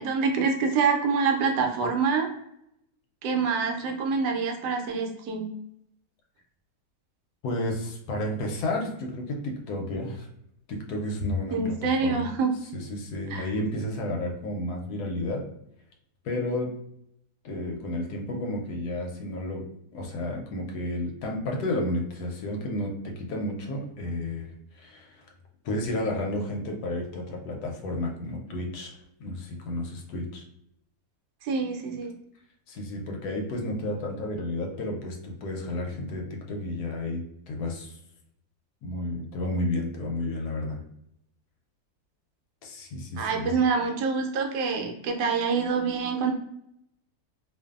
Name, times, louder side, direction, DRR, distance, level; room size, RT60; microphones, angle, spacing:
voice 1, 0.0-2.3 3.2-5.5 11.5-12.6 13.3-13.5 31.4-32.1 43.2-46.3, right 5 dB, 80° right, 3 dB, 1.1 m, -26 dB
voice 2, 7.4-10.3 10.7-11.8 12.0-12.3 12.7-15.4 16.2-16.7 17.4-19.6 19.9-25.3 25.6-30.4 32.7-37.9 38.8-40.8 42.6-43.5, left 1 dB, 75° left, 1 dB, 1.1 m, -32 dB
2.5 x 2.5 x 2.3 m, 0.77 s
omnidirectional pair, 1.8 m